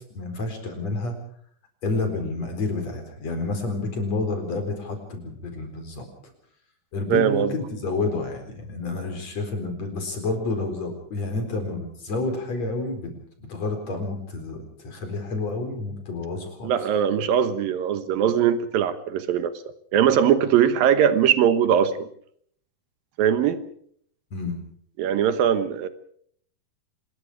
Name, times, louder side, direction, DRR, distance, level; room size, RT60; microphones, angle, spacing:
voice 1, 0.2-1.2 1.8-6.0 6.9-13.1 13.4-16.7 24.3-24.6, left 3 dB, 45° left, 5 dB, 5.4 m, -29 dB
voice 2, 7.1-7.5 16.6-19.5 19.9-22.1 23.2-23.6 25.0-25.9, right 9 dB, 75° right, 11 dB, 2.8 m, -21 dB
26.0 x 21.0 x 5.0 m, 0.62 s
omnidirectional pair, 4.3 m